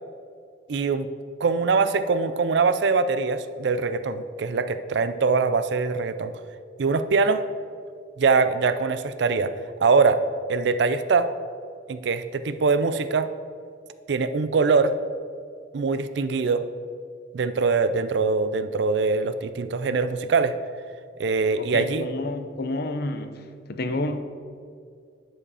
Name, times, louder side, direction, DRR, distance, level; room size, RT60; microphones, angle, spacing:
voice 1, 0.7-1.1 1.4-6.3 6.8-7.4 8.2-9.5 9.8-10.2 10.5-11.3 11.9-13.3 14.1-15.0 15.7-16.7 17.3-20.5 21.2-22.0, right 4 dB, 65° right, 0.4 m, -23 dB
voice 2, 21.6-23.4 23.7-24.2, left 2 dB, 55° left, 0.6 m, -29 dB
9.7 x 5.1 x 4.8 m
head